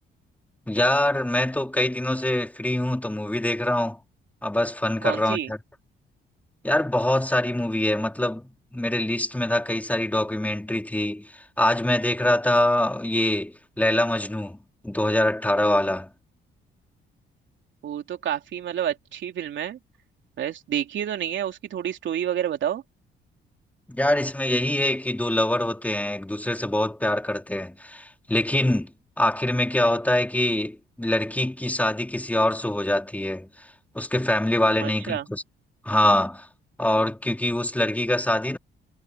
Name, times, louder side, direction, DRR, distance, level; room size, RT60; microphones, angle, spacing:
voice 1, 0.7-4.0 4.4-5.6 6.6-14.6 14.8-16.1 23.9-28.9 29.2-33.7 33.9-35.4 35.8-36.5 36.8-38.6, left 1 dB, 5° left, 3.9 m, -24 dB
voice 2, 5.0-5.5 17.8-19.8 20.4-22.8 34.8-35.3, right 10 dB, 70° right, 3.3 m, -29 dB
cardioid pair, 90°, 20 cm